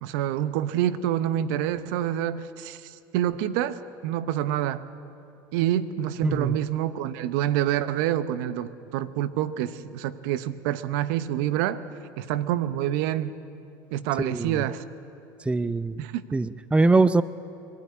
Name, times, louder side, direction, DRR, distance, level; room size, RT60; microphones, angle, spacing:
voice 1, 0.0-3.8 4.0-4.9 5.5-11.8 12.2-13.4 13.9-14.8 16.0-16.2, right 11 dB, 75° right, 14 dB, 0.8 m, -27 dB
voice 2, 6.2-6.6 14.2-14.6 15.5-16.0 16.3-17.2, right 3 dB, 10° right, 15 dB, 0.5 m, -22 dB
23.0 x 12.5 x 9.6 m, 2.6 s
hypercardioid pair, 85°, 11 cm